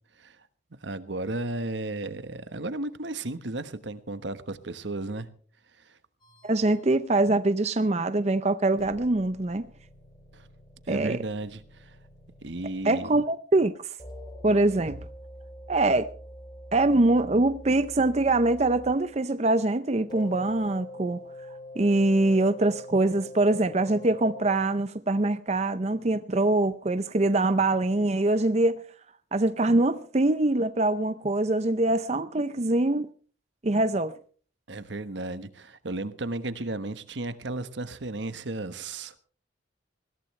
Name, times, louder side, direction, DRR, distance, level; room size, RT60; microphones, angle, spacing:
voice 1, 0.8-5.3 5.8-6.0 10.3-10.5 10.9-12.0 12.4-13.2 14.9-15.0 34.7-39.1, right 2 dB, 75° right, 1.2 m, -34 dB
sound 1, 6.2-6.9 8.8-12.9 14.0-19.0 20.1-24.7, left 1 dB, 25° left, 3.5 m, -45 dB
voice 2, 6.4-9.7 10.9-11.2 12.8-13.9 14.4-15.0 15.7-16.1 16.7-21.2 21.8-28.8 29.3-33.1 33.6-34.2, right 2 dB, 35° right, 0.6 m, -24 dB
21.0 x 15.5 x 3.2 m
head